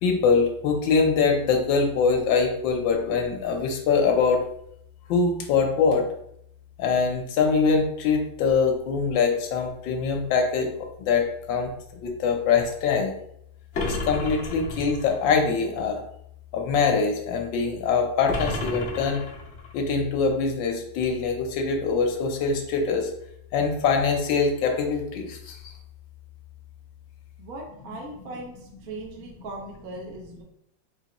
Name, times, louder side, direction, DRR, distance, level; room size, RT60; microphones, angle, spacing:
voice 1, 0.0-4.4 5.1-6.1 6.8-10.7 11.0-11.7 12.0-13.1 13.8-16.0 16.5-19.2 19.7-23.1 23.5-25.7, left 5 dB, 75° left, 3 dB, 1.4 m, -23 dB
sound 1, 13.7-15.2 18.3-19.8, left 2 dB, 55° left, 0.7 m, -32 dB
voice 2, 27.4-30.4, right 2 dB, 65° right, -1 dB, 0.9 m, -39 dB
4.1 x 3.0 x 2.9 m, 0.74 s
omnidirectional pair, 2.2 m